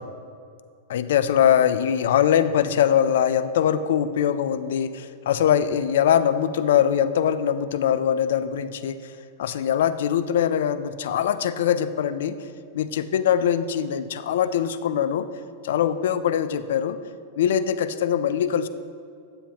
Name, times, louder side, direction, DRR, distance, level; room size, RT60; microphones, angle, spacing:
voice 1, 0.9-9.0 9.4-12.4 12.7-15.3 15.6-17.0 17.4-18.7, left 9 dB, 80° left, 13 dB, 0.4 m, -22 dB
9.3 x 8.3 x 2.9 m, 2.3 s
supercardioid pair, 135°, 0 cm